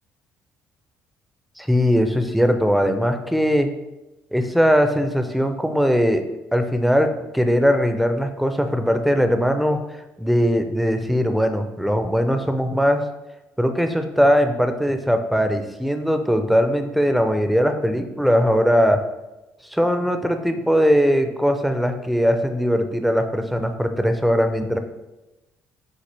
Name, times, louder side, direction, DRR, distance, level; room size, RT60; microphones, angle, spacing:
voice 1, 1.6-3.7 4.3-6.2 6.5-9.8 10.2-13.0 13.6-19.0 19.7-24.8, equal, ahead, 7 dB, 0.5 m, -20 dB
6.7 x 2.4 x 3.3 m, 1.0 s
supercardioid pair, 75°, 6 cm